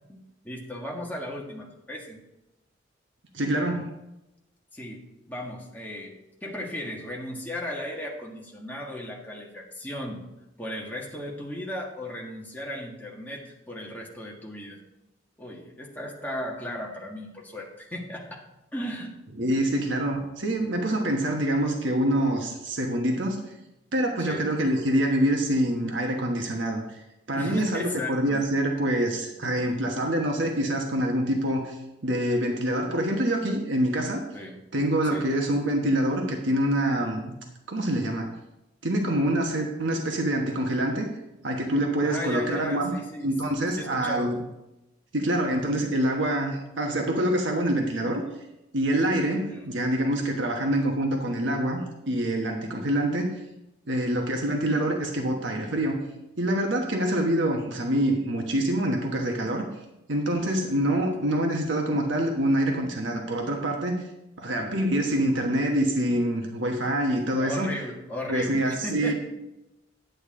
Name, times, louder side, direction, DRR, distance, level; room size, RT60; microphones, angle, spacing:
voice 1, 0.1-2.2 4.7-10.2 10.6-14.8 15.4-18.4 18.7-19.2 24.2-24.5 27.3-28.5 34.3-34.6 35.1-35.3 42.0-43.3 43.7-44.4 49.5-49.7 60.7-61.0 67.4-69.1, left 1 dB, 10° left, -2 dB, 1.5 m, -36 dB
voice 2, 3.3-3.9 19.4-23.4 23.9-27.0 27.3-31.8 32.0-34.2 34.7-37.3 37.7-38.3 38.8-41.1 41.4-42.9 43.2-44.4 45.1-48.2 48.7-53.3 53.9-56.0 56.4-59.6 60.1-64.0 64.4-67.7 68.3-69.1, right 1 dB, 75° right, 2 dB, 1.2 m, -26 dB
10.5 x 8.4 x 3.7 m, 0.93 s
head